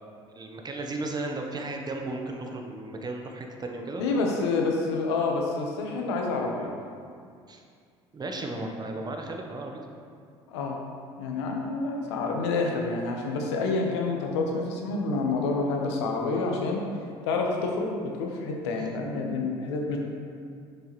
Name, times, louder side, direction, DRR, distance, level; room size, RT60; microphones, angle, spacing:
voice 1, 0.3-4.0 7.5-7.6 8.1-9.8, right 2 dB, 30° right, 2 dB, 0.9 m, -35 dB
voice 2, 4.0-6.7 8.5-8.8 10.5-10.8 11.2-16.8 17.2-20.0, left 3 dB, 80° left, 1 dB, 1.0 m, -28 dB
6.6 x 6.3 x 3.1 m, 2.3 s
hypercardioid pair, 65°, 14 cm